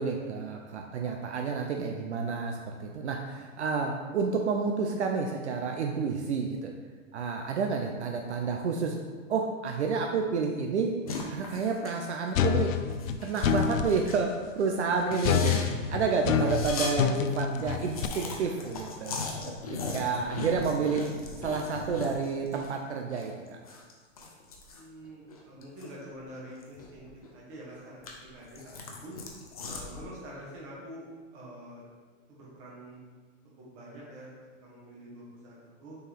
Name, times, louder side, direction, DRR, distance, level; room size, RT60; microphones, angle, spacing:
voice 1, 0.0-6.7 7.1-9.0 9.3-11.0 11.3-12.8 13.2-15.6 15.9-19.2 19.7-21.1 21.4-23.6, right 5 dB, 60° right, 2 dB, 0.7 m, -30 dB
sound 1, 11.1-12.0 12.3-12.5 12.9-14.3 14.6-14.7 15.0-16.9 17.3-17.4 17.6-22.7 23.0-26.0 26.3-27.3 27.7-30.0, left 3 dB, 30° left, 0.5 m, -39 dB
sound 2, 12.4-13.9 15.2-18.1, left 7 dB, 90° left, 0.6 m, -27 dB
voice 2, 24.7-27.1 27.3-28.8 29.0-29.2 29.7-31.1 31.3-31.8 32.3-33.0 33.6-34.3 34.6-36.0, right 1 dB, 20° right, -6 dB, 1.3 m, -46 dB
6.4 x 4.8 x 3.5 m, 1.5 s
hypercardioid pair, 175°, 38 cm